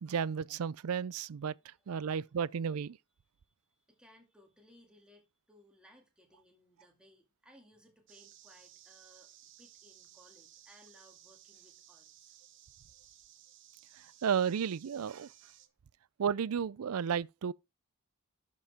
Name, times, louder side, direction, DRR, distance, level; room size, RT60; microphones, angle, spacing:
voice 1, 0.0-3.0 14.2-15.3 16.2-17.5, right 7 dB, 80° right, 0.4 m, -33 dB
voice 2, 1.8-2.2 3.4-12.4 14.0-14.3, equal, 5° right, 2.1 m, -63 dB
sound 1, 8.1-15.7, right 12 dB, 55° right, 1.0 m, -58 dB
11.5 x 5.4 x 3.5 m
head